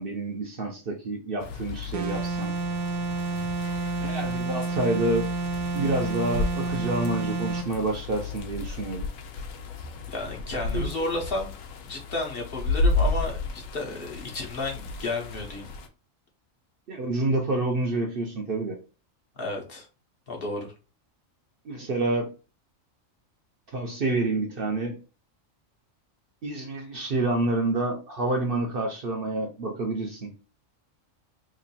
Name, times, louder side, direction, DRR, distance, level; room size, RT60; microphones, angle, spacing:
voice 1, 0.0-2.5 4.0-5.3 5.7-9.1 10.7-10.9 16.9-18.8 21.6-22.3 23.7-25.0 26.4-30.3, right 2 dB, 50° right, 0.8 m, -28 dB
sound 1, 1.4-15.9, left 3 dB, 80° left, 1.0 m, -33 dB
sound 2, 1.9-7.7, right 3 dB, 90° right, 1.0 m, -30 dB
voice 2, 10.1-11.5 11.9-15.7 19.4-19.9 20.3-20.7, left 2 dB, 50° left, 1.0 m, -32 dB
3.0 x 2.5 x 4.0 m
omnidirectional pair, 1.4 m